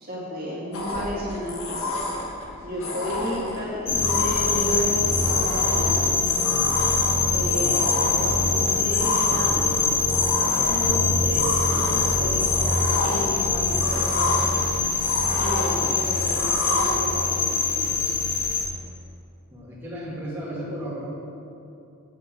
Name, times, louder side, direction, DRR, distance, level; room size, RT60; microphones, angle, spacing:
voice 1, 0.0-2.0 2.6-6.2 6.6-6.7 7.3-9.7 10.6-12.5 12.9-14.6 15.3-18.2, equal, 40° right, -6 dB, 2.3 m, -32 dB
sound 1, 0.7-16.9, left 2 dB, 75° left, 1.6 m, -30 dB
sound 2, 3.9-18.7, left 4 dB, 40° left, 0.9 m, -23 dB
voice 2, 7.2-7.7 10.3-11.2 19.5-21.1, right 1 dB, 10° right, -9 dB, 2.1 m, -36 dB
8.4 x 6.2 x 7.5 m, 2.7 s
head